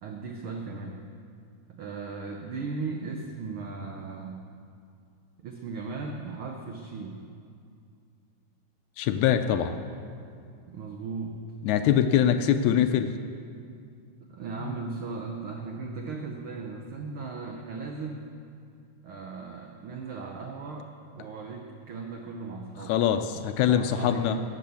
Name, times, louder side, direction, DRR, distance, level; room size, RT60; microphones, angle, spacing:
voice 1, 0.0-1.0 1.7-4.4 5.4-7.2 10.7-11.5 14.2-18.3 19.0-23.0 23.3-23.4 23.7-24.4, right 4 dB, 85° right, 2 dB, 1.1 m, -37 dB
voice 2, 9.0-9.8 11.6-13.1 14.6-14.7 22.9-24.4, left 9 dB, 80° left, 8 dB, 1.8 m, -23 dB
16.5 x 8.3 x 7.0 m, 2.3 s
omnidirectional pair, 3.7 m